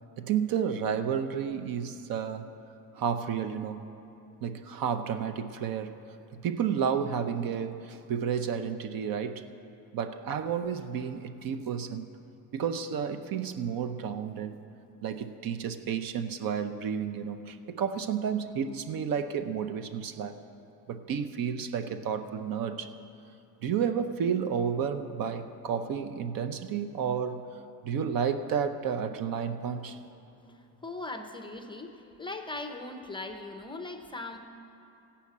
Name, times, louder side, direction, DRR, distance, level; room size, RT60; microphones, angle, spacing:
voice 1, 0.2-2.5 2.9-3.8 4.4-6.0 6.3-9.4 9.9-12.1 12.5-14.6 15.0-20.4 20.9-22.9 23.6-27.4 27.8-30.0, right 7 dB, 60° right, 9 dB, 0.7 m, -31 dB
voice 2, 30.5-34.4, left 2 dB, 15° left, 6 dB, 0.6 m, -40 dB
16.0 x 5.7 x 8.3 m, 2.7 s
cardioid pair, 145°, 39 cm